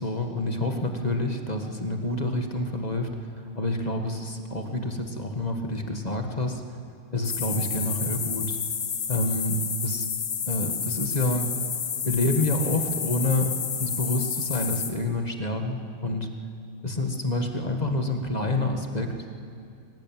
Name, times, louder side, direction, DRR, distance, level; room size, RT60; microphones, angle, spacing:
voice 1, 0.0-6.6 7.1-8.6 9.1-10.1 10.4-11.5 12.0-16.3 16.8-19.1, left 2 dB, 20° left, 4 dB, 1.7 m, -28 dB
sound 1, 7.2-14.9, left 7 dB, 75° left, 2.2 m, -30 dB
23.5 x 18.5 x 9.1 m, 2.4 s
omnidirectional pair, 2.1 m